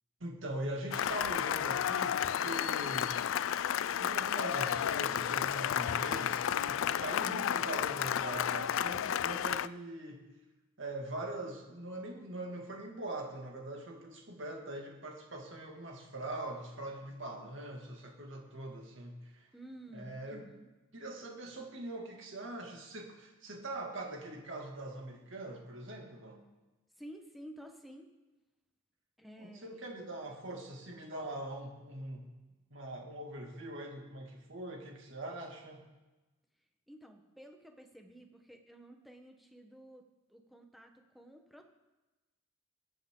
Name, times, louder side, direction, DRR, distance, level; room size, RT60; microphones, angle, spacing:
voice 1, 0.2-3.2 4.0-10.3 10.8-19.5 19.9-20.4 20.9-26.4 29.4-32.3 32.7-35.8, right 1 dB, 60° right, 1 dB, 2.2 m, -42 dB
Cheering / Applause, 0.9-9.7, left 9 dB, 65° left, 0.3 m, -32 dB
voice 2, 19.5-20.7 27.0-28.1 29.2-29.9 36.9-41.6, right 1 dB, ahead, 3 dB, 1.1 m, -52 dB
20.0 x 8.0 x 3.8 m, 1.1 s
head